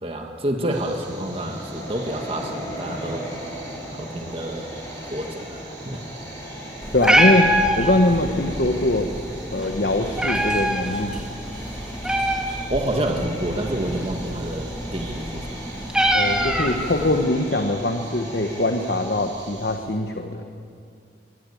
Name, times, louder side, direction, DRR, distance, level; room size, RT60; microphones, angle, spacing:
voice 1, 0.0-3.3 3.9-4.7 5.0-6.0 12.7-15.5, right 1 dB, 30° right, 2 dB, 1.9 m, -28 dB
Train, 0.7-19.6, equal, 20° left, 7.9 m, -38 dB
sound 1, 0.7-19.8, right 3 dB, 75° right, 7.2 m, -44 dB
Meow, 6.8-17.2, equal, 5° right, 2.1 m, -25 dB
voice 2, 6.9-7.5 7.8-9.1 9.5-11.2 16.1-20.5, left 2 dB, 55° left, 4 dB, 1.3 m, -22 dB
24.0 x 19.5 x 8.6 m, 2.3 s
head